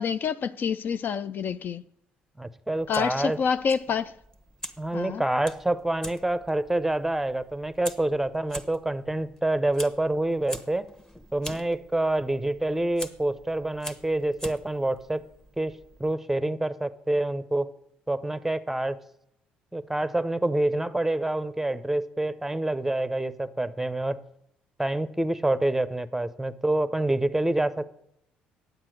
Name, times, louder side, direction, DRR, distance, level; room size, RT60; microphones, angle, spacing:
voice 1, 0.0-1.8 2.9-4.1 4.9-5.2, left 6 dB, 50° left, 0.4 m, -27 dB
voice 2, 2.4-3.4 4.8-10.9 11.3-15.2 15.6-17.7 18.1-19.0 19.7-24.2 24.8-27.9, right 1 dB, 5° right, 0.7 m, -27 dB
Fire, 2.7-16.1, equal, 15° left, 1.2 m, -45 dB
9.6 x 7.4 x 6.4 m
hypercardioid pair, 55°, 4 cm